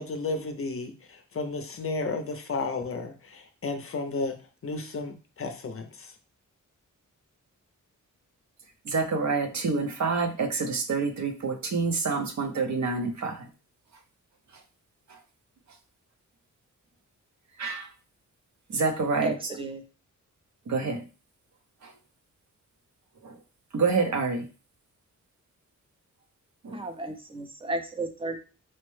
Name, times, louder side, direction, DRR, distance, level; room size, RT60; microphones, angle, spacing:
voice 1, 0.0-4.4 4.6-6.1, left 3 dB, 45° left, 0.5 m, -33 dB
voice 2, 8.9-13.4 17.6-17.9 18.7-19.3 20.7-21.0 21.8-21.9 23.2-23.4 23.7-24.4 26.6-26.8, right 4 dB, 60° right, 0.6 m, -27 dB
voice 3, 19.2-19.8 26.7-28.4, right 2 dB, 15° right, 0.4 m, -34 dB
4.3 x 2.1 x 3.1 m
wide cardioid pair, 170°, 31 cm